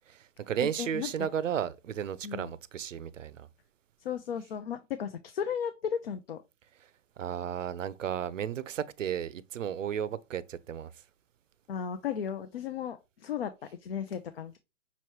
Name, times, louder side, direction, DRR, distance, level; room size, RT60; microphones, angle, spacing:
voice 1, 0.1-3.5 7.2-10.9, right 9 dB, 80° right, 0.6 m, -34 dB
voice 2, 0.8-1.3 2.2-2.5 4.0-6.4 11.7-13.5 13.8-14.6, left 8 dB, 50° left, 0.5 m, -35 dB
5.6 x 3.0 x 3.0 m
hypercardioid pair, 145°, 38 cm